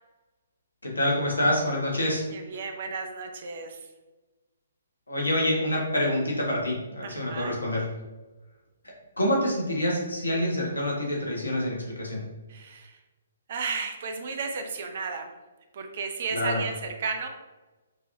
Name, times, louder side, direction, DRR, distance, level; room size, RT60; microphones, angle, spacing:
voice 1, 0.8-2.2 5.1-7.8 9.2-12.2 16.3-16.6, left 1 dB, 80° left, -3 dB, 1.4 m, -26 dB
voice 2, 2.3-3.9 7.0-7.6 12.5-13.0 13.5-15.3 15.7-17.3, right 5 dB, 50° right, 5 dB, 0.6 m, -33 dB
4.7 x 3.0 x 2.6 m, 1.1 s
figure-of-eight pair, 130°, 0 cm